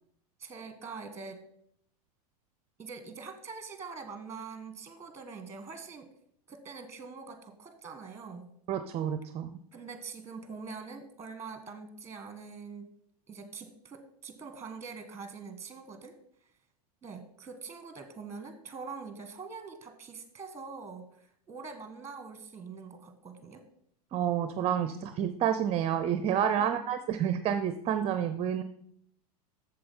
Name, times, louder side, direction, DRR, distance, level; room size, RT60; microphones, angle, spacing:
voice 1, 0.4-1.4 2.8-6.1 6.5-8.5 9.7-12.9 13.3-16.2 17.0-23.6 26.6-26.8, right 5 dB, 15° right, 9 dB, 1.4 m, -44 dB
voice 2, 8.7-9.6 24.1-28.6, right 9 dB, 30° right, 11 dB, 0.6 m, -29 dB
7.7 x 7.1 x 5.5 m, 0.70 s
hypercardioid pair, 110°, 20 cm